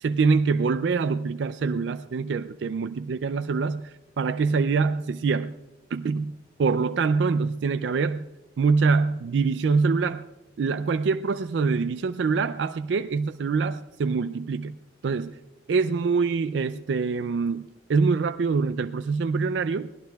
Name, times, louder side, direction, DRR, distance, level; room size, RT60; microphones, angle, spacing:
voice 1, 0.0-5.5 5.9-6.3 6.6-8.3 8.6-10.2 10.6-14.8 15.0-15.3 15.7-19.9, right 4 dB, 70° right, 11 dB, 0.4 m, -25 dB
24.0 x 18.0 x 2.3 m, 1.1 s
head